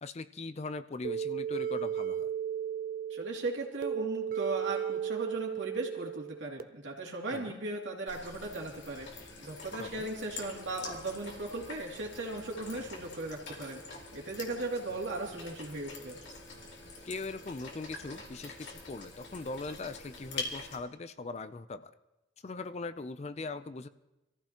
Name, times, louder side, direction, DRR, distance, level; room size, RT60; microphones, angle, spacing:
voice 1, 0.0-2.3 7.3-7.6 9.8-10.1 17.0-21.9 22.4-23.9, left 3 dB, 35° left, 12 dB, 0.4 m, -40 dB
sound 1, 1.0-6.6, right 8 dB, 50° right, 0.5 m, -35 dB
voice 2, 3.1-9.1 9.4-16.2, right 2 dB, 75° right, -1 dB, 2.6 m, -37 dB
sound 2, 8.1-20.8, left 3 dB, 70° left, 2.4 m, -45 dB
24.0 x 14.5 x 2.9 m, 0.98 s
head